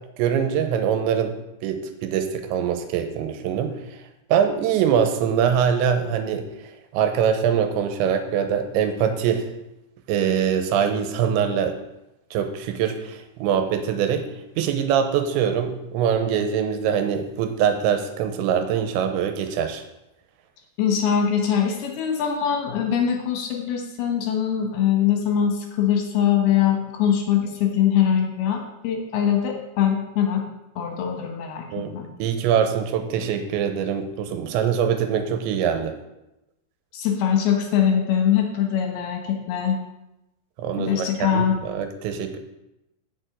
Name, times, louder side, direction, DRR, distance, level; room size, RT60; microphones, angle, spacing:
voice 1, 0.2-1.4 1.6-3.8 4.3-6.5 6.9-9.5 10.1-11.8 12.3-14.3 14.6-19.8 31.7-31.9 32.2-36.0 40.6-42.4, right 8 dB, 90° right, 7 dB, 3.2 m, -23 dB
voice 2, 20.8-30.4 30.8-31.7 31.9-32.1 36.9-39.8 40.8-41.6, left 8 dB, 70° left, 3 dB, 2.8 m, -22 dB
6.9 x 6.3 x 7.7 m, 0.91 s
omnidirectional pair, 5.1 m